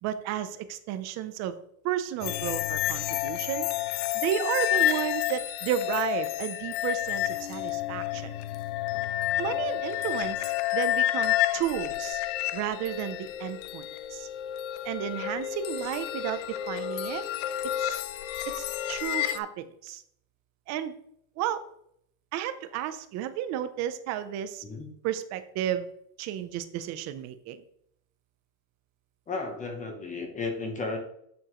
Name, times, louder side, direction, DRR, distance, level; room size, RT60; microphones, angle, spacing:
voice 1, 0.0-1.5 1.8-3.7 4.1-8.3 9.4-12.2 12.5-14.3 14.8-17.2 17.6-18.0 18.5-20.0 20.7-20.9 21.4-21.6 22.3-24.6 25.0-25.9 26.2-27.6, right 10 dB, 35° right, 11 dB, 0.6 m, -32 dB
sound 1, 2.2-19.4, left 13 dB, 60° left, 0.6 m, -30 dB
voice 2, 29.3-31.0, left 3 dB, 15° left, 4 dB, 0.9 m, -33 dB
9.1 x 7.1 x 3.1 m, 0.70 s
cardioid pair, 180°, 44 cm